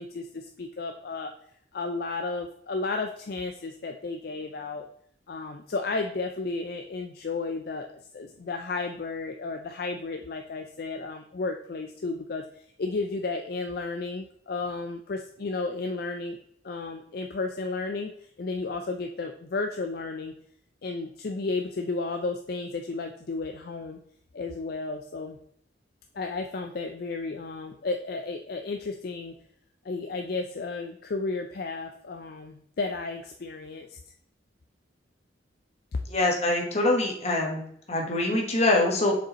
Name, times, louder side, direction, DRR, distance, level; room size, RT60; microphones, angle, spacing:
voice 1, 0.0-1.3 1.7-4.9 5.3-7.9 8.1-16.4 16.6-20.4 20.8-24.0 24.3-25.4 26.1-29.4 29.8-34.0, left 3 dB, 55° left, 5 dB, 0.4 m, -33 dB
voice 2, 36.1-37.6 37.9-39.2, left 2 dB, 35° left, 0 dB, 1.3 m, -24 dB
6.8 x 5.1 x 3.0 m, 0.67 s
head